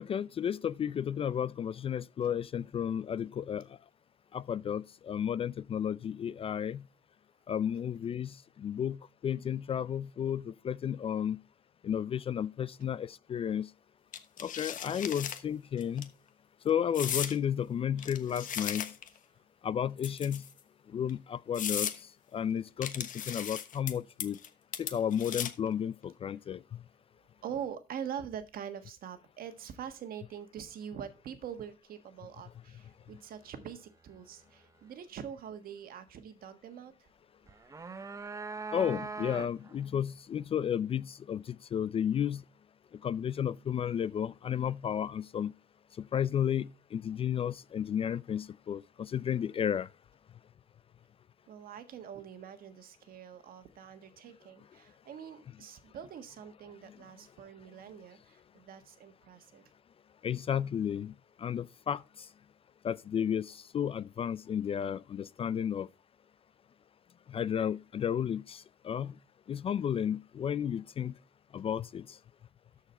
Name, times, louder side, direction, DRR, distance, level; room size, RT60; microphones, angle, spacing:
voice 1, 0.0-3.6 4.3-6.8 7.5-11.4 11.8-13.7 14.4-16.1 16.6-18.9 19.6-20.4 20.9-21.9 22.3-24.4 24.8-26.8 38.7-42.4 43.0-45.5 46.1-49.9 56.9-57.0 60.2-61.1 61.4-62.0 62.8-65.9 67.3-69.1 69.5-71.1 71.5-72.2, left 9 dB, 35° left, 0.3 m, -33 dB
sound 1, 14.1-15.4 15.8-16.0 16.9-17.4 18.0-19.2 20.0-20.6 21.1-21.2 21.5-22.0 22.8-23.9 24.2-24.5 24.7-25.7, left 9 dB, 50° left, 1.1 m, -36 dB
voice 2, 27.4-37.1 51.5-59.7, right 8 dB, 60° right, 1.5 m, -44 dB
sound 2, 37.5-39.8, right 4 dB, 20° right, 0.6 m, -41 dB
13.0 x 4.8 x 4.4 m
cardioid pair, 110°, 17 cm